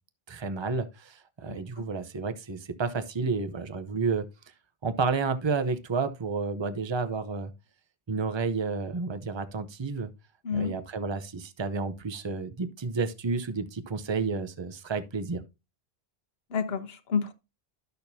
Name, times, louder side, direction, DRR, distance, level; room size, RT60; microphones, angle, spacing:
voice 1, 0.3-4.3 4.8-7.5 8.1-10.1 10.5-15.4, right 4 dB, 30° right, 0.8 m, -31 dB
voice 2, 1.5-1.9 10.4-10.8 16.5-17.3, left 6 dB, 70° left, 1.2 m, -30 dB
12.0 x 6.7 x 2.7 m
omnidirectional pair, 1.1 m